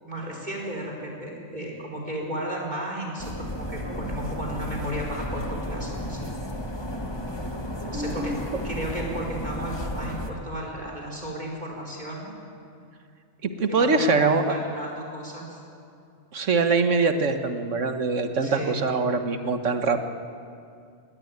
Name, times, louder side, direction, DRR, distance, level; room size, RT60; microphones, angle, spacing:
voice 1, 0.0-6.2 7.9-8.3 8.6-12.3 13.7-15.6 18.4-18.8, right 1 dB, 35° right, -1 dB, 4.7 m, -34 dB
sound 1, 3.2-10.3, left 1 dB, 20° left, 1.5 m, -33 dB
voice 2, 7.9-8.4 13.4-14.5 16.3-20.0, right 4 dB, 80° right, 7 dB, 1.6 m, -23 dB
19.5 x 18.0 x 9.4 m, 2.4 s
omnidirectional pair, 1.3 m